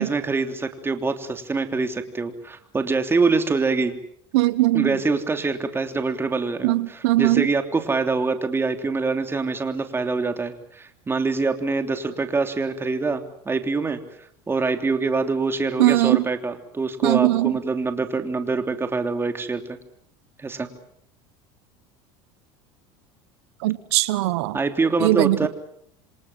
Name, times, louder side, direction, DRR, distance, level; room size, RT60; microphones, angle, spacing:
voice 1, 0.0-4.0 4.7-14.0 14.5-19.8 20.4-20.7 24.5-25.5, right 4 dB, 15° right, 7 dB, 3.2 m, -25 dB
voice 2, 4.3-5.0 6.6-7.5 15.8-16.2 17.0-17.5 23.6-24.6 25.0-25.5, right 18 dB, 85° right, 15 dB, 1.3 m, -20 dB
28.0 x 26.0 x 7.4 m, 0.67 s
supercardioid pair, 120°, 14 cm